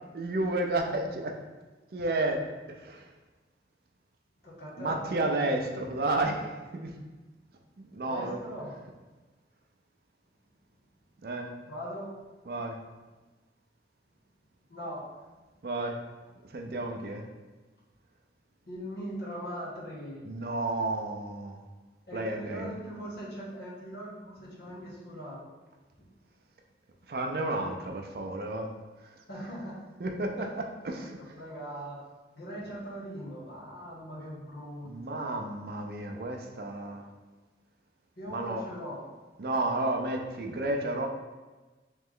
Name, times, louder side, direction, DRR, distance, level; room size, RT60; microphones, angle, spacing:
voice 1, 0.1-1.3 1.9-2.4 2.7-3.1 4.8-6.9 7.8-8.4 11.2-11.5 12.5-12.8 15.6-16.0 16.5-17.2 20.3-21.6 22.1-22.7 27.1-28.7 30.0-31.2 34.9-37.0 38.3-38.6 39.4-41.1, right 2 dB, 55° right, 2 dB, 0.4 m, -31 dB
voice 2, 4.4-5.0 8.1-8.7 11.7-12.1 14.7-15.1 18.7-20.3 22.1-25.5 26.0-26.1 29.3-29.8 30.4-30.5 31.4-32.0 32.3-35.2 38.2-39.0, equal, 60° left, -5 dB, 1.1 m, -40 dB
3.3 x 3.1 x 3.6 m, 1.2 s
head